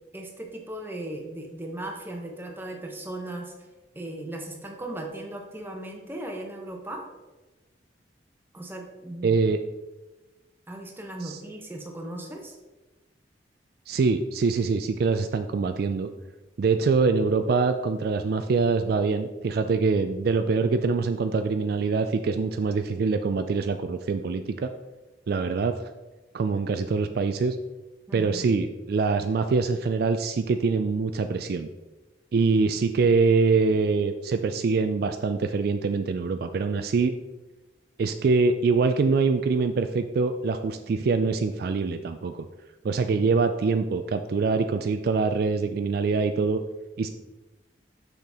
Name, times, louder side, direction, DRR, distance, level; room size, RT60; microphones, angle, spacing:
voice 1, 0.1-3.5 3.9-7.0 8.5-9.4 10.7-12.5 28.1-28.5, right 1 dB, 10° right, 2 dB, 0.9 m, -37 dB
voice 2, 9.2-9.6 11.2-11.4 13.9-16.1 16.6-24.7 25.3-25.7 26.3-27.6 28.1-31.7 32.3-37.1 38.0-42.3 42.8-46.6 47.0-47.1, right 4 dB, 55° right, 8 dB, 0.3 m, -24 dB
6.5 x 5.8 x 3.5 m, 1.1 s
head